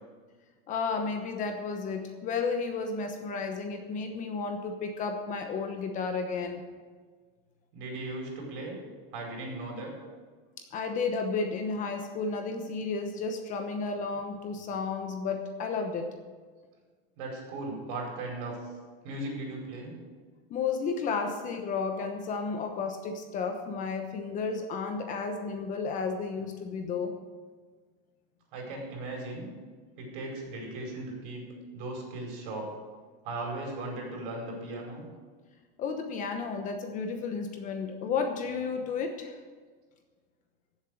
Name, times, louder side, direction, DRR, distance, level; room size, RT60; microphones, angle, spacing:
voice 1, 0.7-6.6 10.6-16.1 20.5-27.1 35.8-39.4, left 4 dB, 25° left, 5 dB, 1.0 m, -32 dB
voice 2, 7.7-8.8 9.1-9.9 17.2-18.5 19.0-19.9 28.5-29.5 30.0-31.4 31.7-32.7 33.2-35.1, right 2 dB, 55° right, 0 dB, 5.1 m, -37 dB
15.5 x 7.5 x 6.4 m, 1.5 s
supercardioid pair, 170°, 29 cm